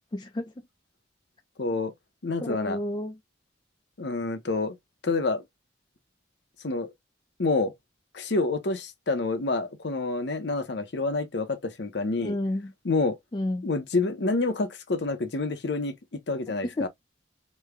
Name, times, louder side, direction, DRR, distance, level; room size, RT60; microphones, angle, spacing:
voice 1, 0.1-0.5 2.5-3.2 12.2-12.7 13.3-13.7 16.8-16.9, left 1 dB, 25° left, 0.4 m, -30 dB
voice 2, 1.6-1.9 2.2-2.8 4.0-4.8 5.0-5.4 6.6-6.9 7.4-7.7 8.1-12.4 12.8-13.2 13.6-15.9 16.3-16.9, left 3 dB, 60° left, 0.7 m, -28 dB
3.1 x 2.1 x 3.5 m
head